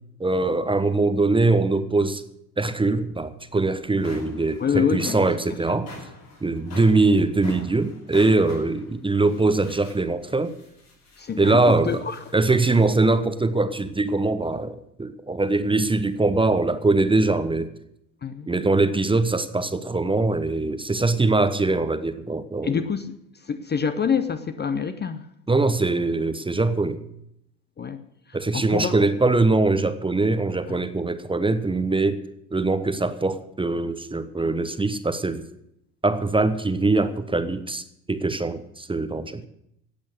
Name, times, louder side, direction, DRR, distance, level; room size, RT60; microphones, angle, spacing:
voice 1, 0.2-2.2 2.6-5.9 6.4-10.5 11.4-11.9 12.3-17.7 18.5-22.7 25.5-27.0 28.3-32.2 32.5-35.4 36.0-39.4, right 3 dB, 10° right, 0.9 m, -22 dB
sound 1, 3.3-3.4 3.8-13.0, left 2 dB, 80° left, 5.6 m, -46 dB
voice 2, 4.6-5.3 11.2-12.3 12.7-12.8 18.2-18.5 22.6-25.3 27.8-28.0 28.3-28.9 30.7-30.8, left 7 dB, 20° left, 0.8 m, -27 dB
16.5 x 8.6 x 6.6 m
figure-of-eight pair, 60°, 47 cm